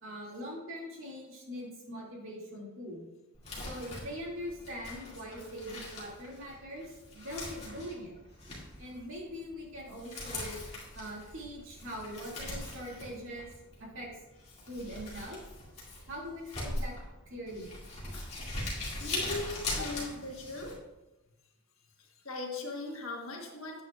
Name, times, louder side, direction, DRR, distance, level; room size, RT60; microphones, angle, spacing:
voice 1, 0.0-3.0 3.6-8.1 8.8-10.6 10.9-13.5 13.8-14.1 14.7-15.4 16.1-16.9 17.3-17.7, equal, 60° right, -3 dB, 2.3 m, -42 dB
Crumpling crinkling, 3.3-20.7, left 2 dB, 30° left, 2.1 m, -41 dB
voice 2, 19.0-20.8 22.0-23.8, left 2 dB, 65° left, 0 dB, 1.5 m, -39 dB
9.3 x 8.7 x 2.4 m, 1.0 s
head